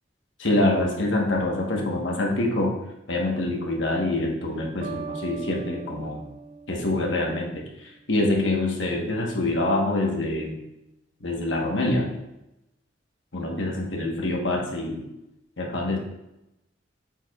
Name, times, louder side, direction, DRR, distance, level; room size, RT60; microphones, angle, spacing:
voice 1, 0.4-2.7 3.1-6.3 6.7-10.6 11.2-12.2 13.3-15.0 15.6-16.0, left 2 dB, 85° left, 0 dB, 1.3 m, -25 dB
sound 1, 4.8-7.6, right 5 dB, 40° right, 0.5 m, -39 dB
8.8 x 4.8 x 2.4 m, 0.90 s
head